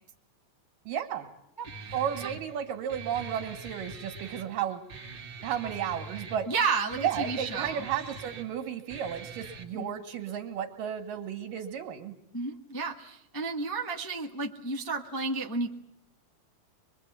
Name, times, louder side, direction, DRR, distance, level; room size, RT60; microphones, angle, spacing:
voice 1, 0.9-1.3 1.9-4.8 5.4-6.5 7.0-12.1, right 9 dB, 80° right, 4 dB, 3.7 m, -33 dB
voice 2, 1.6-1.9 6.5-7.8 9.7-9.9 12.3-15.7, right 4 dB, 15° left, -1 dB, 0.9 m, -32 dB
Guitar, 1.6-9.6, right 3 dB, 40° right, 2.4 m, -43 dB
24.0 x 23.5 x 8.6 m, 0.78 s
omnidirectional pair, 3.8 m